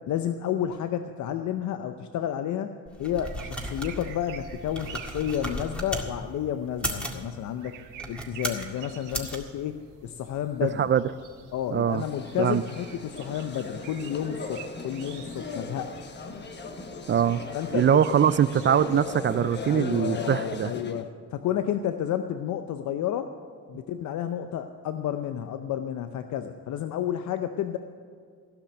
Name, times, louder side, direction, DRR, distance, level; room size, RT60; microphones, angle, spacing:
voice 1, 0.1-2.7 3.0-7.7 8.1-10.9 11.5-16.1 17.5-18.1 19.7-23.3 23.7-27.8, left 10 dB, 70° left, 8 dB, 0.6 m, -31 dB
sound 1, 2.9-6.1 6.7-7.2 7.9-8.7 9.1-9.4, equal, 5° left, 1.9 m, -35 dB
sound 2, 3.2-19.8, right 8 dB, 85° right, 1.4 m, -49 dB
voice 2, 11.7-12.0 12.4-12.6 17.1-17.4 17.7-20.7, right 9 dB, 40° right, 15 dB, 0.4 m, -22 dB
sound 3, 11.9-21.1, left 3 dB, 35° left, 1.1 m, -38 dB
16.0 x 5.9 x 8.2 m, 2.1 s
cardioid pair, 90°, 30 cm